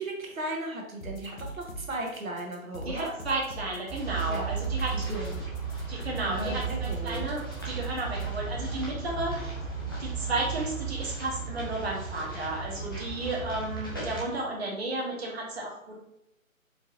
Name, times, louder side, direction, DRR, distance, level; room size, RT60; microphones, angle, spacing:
voice 1, 0.0-3.1 4.3-4.5 4.9-5.4 6.2-7.4, right 1 dB, 80° right, 0 dB, 1.1 m, -36 dB
sound 1, 1.0-8.3, right 1 dB, 75° left, 1.0 m, -41 dB
voice 2, 2.9-5.2 5.9-9.6 10.0-15.9, right 2 dB, 50° right, -2 dB, 1.1 m, -33 dB
sound 2, 3.9-14.2, right 5 dB, 15° left, 0.5 m, -35 dB
4.6 x 2.8 x 2.7 m, 0.85 s
figure-of-eight pair, 150°, 41 cm